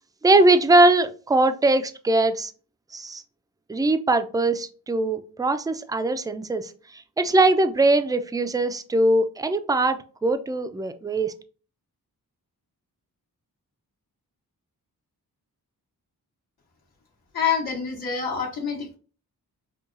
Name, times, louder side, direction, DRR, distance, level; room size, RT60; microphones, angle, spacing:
voice 1, 0.2-2.5 2.9-3.2 3.7-6.7 7.2-11.3, right 2 dB, 10° right, 9 dB, 0.4 m, -21 dB
voice 2, 17.3-19.0, left 7 dB, 75° left, -3 dB, 1.1 m, -26 dB
5.5 x 2.2 x 2.5 m, 0.38 s
wide cardioid pair, 85°, 38 cm